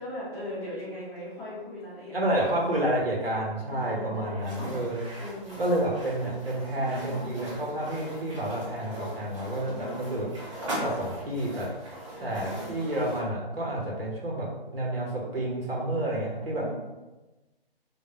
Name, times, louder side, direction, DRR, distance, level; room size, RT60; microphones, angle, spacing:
voice 1, 0.0-2.7 3.7-4.8 5.2-5.7 6.7-7.6 9.6-10.3 12.1-12.9 16.5-16.7, left 1 dB, 10° left, -15 dB, 0.6 m, -40 dB
voice 2, 2.1-5.1 5.6-10.3 10.8-11.7 12.2-14.5 14.7-16.6, right 1 dB, 70° right, -3 dB, 1.0 m, -29 dB
sound 1, 4.4-13.3, right 1 dB, 30° right, 0.7 m, -40 dB
2.3 x 2.1 x 3.1 m, 1.1 s
figure-of-eight pair, 135°, 30 cm